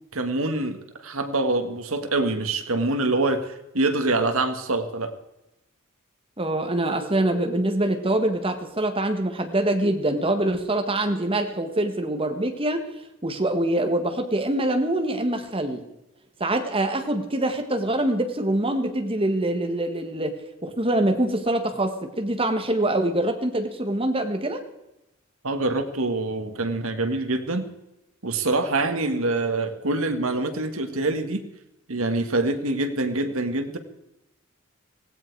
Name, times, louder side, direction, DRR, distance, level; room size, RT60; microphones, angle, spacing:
voice 1, 0.1-5.1 25.4-27.7 28.2-31.4 31.9-33.8, right 2 dB, 75° right, 7 dB, 1.6 m, -25 dB
voice 2, 6.4-12.9 13.2-15.9 16.4-24.6, right 1 dB, 25° right, 6 dB, 1.5 m, -24 dB
17.0 x 16.0 x 4.7 m, 0.94 s
head